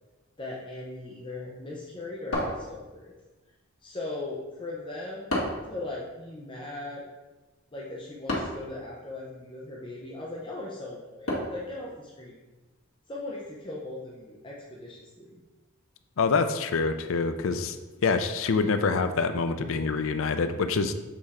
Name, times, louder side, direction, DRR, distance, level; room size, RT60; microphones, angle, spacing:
voice 1, 0.4-3.1 3.8-5.4 5.7-7.0 7.7-12.4 13.1-15.4, left 2 dB, 25° left, -4 dB, 0.7 m, -39 dB
sound 1, 2.3-3.2 5.3-5.8 8.3-8.7 11.3-11.7, left 1 dB, 85° left, 1.5 m, -30 dB
voice 2, 16.2-17.8 18.0-20.9, left 4 dB, 70° left, 9 dB, 0.5 m, -26 dB
6.8 x 3.6 x 4.2 m, 1.1 s
head